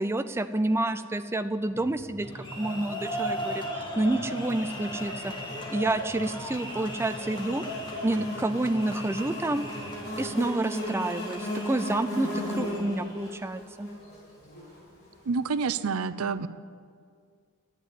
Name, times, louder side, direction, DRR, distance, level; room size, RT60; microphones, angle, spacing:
voice 1, 0.0-5.3 5.7-7.7 8.0-9.6 10.2-13.9, right 2 dB, 10° right, 10 dB, 0.4 m, -29 dB
sound 1, 1.7-10.2, equal, 65° left, 2.0 m, -46 dB
sound 2, 2.2-13.3, equal, 20° left, 1.7 m, -38 dB
Buzz, 4.7-15.2, left 1 dB, 50° left, 3.9 m, -37 dB
voice 2, 15.3-16.5, right 5 dB, 80° right, 14 dB, 0.5 m, -28 dB
11.0 x 8.3 x 9.5 m, 2.1 s
head